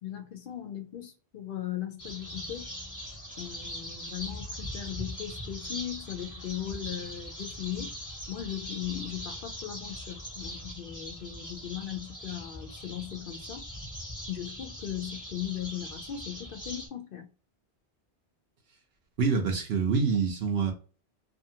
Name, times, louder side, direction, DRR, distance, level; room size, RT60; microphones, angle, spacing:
voice 1, 0.0-2.7 3.4-8.0 8.3-13.6 14.3-17.3, left 11 dB, 60° left, 0.6 m, -38 dB
sound 1, 2.0-16.9, equal, 20° left, 1.0 m, -41 dB
voice 2, 19.2-20.7, right 5 dB, 75° right, 0.9 m, -26 dB
2.5 x 2.5 x 2.7 m
omnidirectional pair, 1.1 m